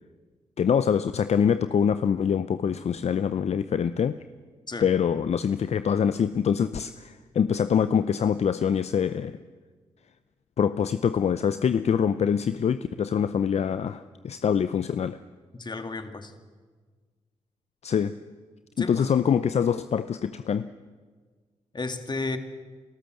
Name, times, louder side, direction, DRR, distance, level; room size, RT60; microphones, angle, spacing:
voice 1, 0.6-4.2 4.8-9.3 10.6-15.2 17.8-18.1 18.8-20.6, left 7 dB, 60° left, 13 dB, 0.6 m, -24 dB
voice 2, 15.5-16.3 18.8-19.2 21.7-22.4, left 3 dB, 35° left, 8 dB, 2.2 m, -33 dB
28.0 x 13.0 x 7.8 m, 1.5 s
supercardioid pair, 45°, 12 cm